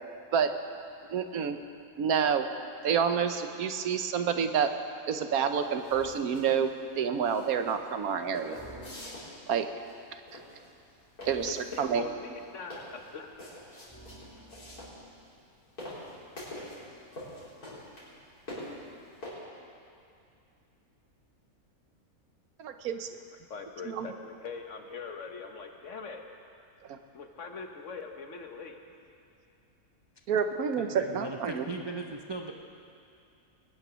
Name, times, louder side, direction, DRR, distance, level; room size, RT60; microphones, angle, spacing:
voice 1, 1.1-1.6 2.0-2.4 2.8-4.7 5.1-6.7 7.0-8.6 9.5-9.7 11.2-12.0 22.6-23.1 23.8-24.1 26.9-27.0 30.3-31.6, right 7 dB, 75° right, 8 dB, 1.3 m, -28 dB
sound 1, 5.5-19.3, left 1 dB, 85° left, 4.6 m, -46 dB
sound 2, 5.9-6.3 8.5-9.5 11.2-12.3 13.9-15.2, right 1 dB, 10° left, 2.2 m, -52 dB
voice 2, 11.5-13.3 17.6-17.9 23.5-26.2 27.1-28.8, left 5 dB, 55° left, 4 dB, 1.4 m, -42 dB
voice 3, 30.8-32.5, right 3 dB, 35° right, 2 dB, 0.4 m, -38 dB
20.5 x 10.0 x 6.2 m, 2.5 s
omnidirectional pair, 1.6 m